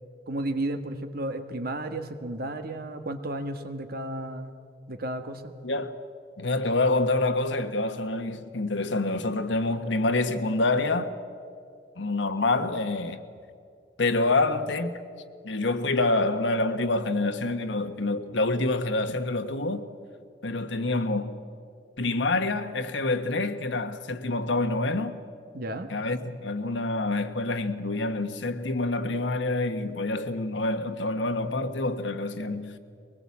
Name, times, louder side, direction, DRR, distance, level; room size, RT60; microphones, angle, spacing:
voice 1, 0.3-4.5 4.9-5.5 25.5-25.9, right 1 dB, 55° right, 1.5 m, -33 dB
voice 2, 5.6-6.0 6.4-11.1 12.0-13.2 14.0-15.0 15.4-19.8 20.4-21.4 22.0-25.2 25.9-32.8, left 2 dB, 85° left, 1.3 m, -27 dB
22.5 x 19.0 x 8.5 m
head